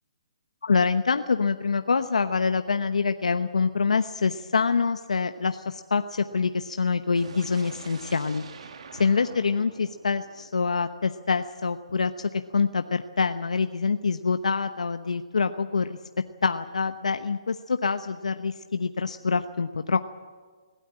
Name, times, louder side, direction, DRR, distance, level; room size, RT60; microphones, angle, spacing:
voice 1, 0.6-8.4 8.9-16.0 16.4-20.0, left 5 dB, 85° left, 9 dB, 0.9 m, -25 dB
sound 1, 7.1-11.1, right 5 dB, 65° right, 1.9 m, -46 dB
21.5 x 17.0 x 8.8 m, 1.5 s
hypercardioid pair, 145°, 4 cm